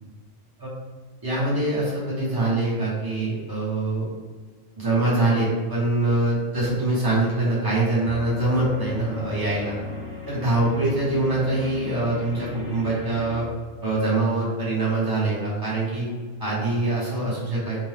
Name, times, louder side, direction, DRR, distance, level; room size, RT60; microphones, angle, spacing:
voice 1, 1.2-4.0 4.8-9.8 10.3-13.4 13.8-16.1 16.4-17.9, right 2 dB, 20° right, -8 dB, 0.8 m, -24 dB
sound 1, 8.0-13.4, left 4 dB, 65° right, 1.2 m, -37 dB
2.7 x 2.2 x 3.3 m, 1.5 s
omnidirectional pair, 1.3 m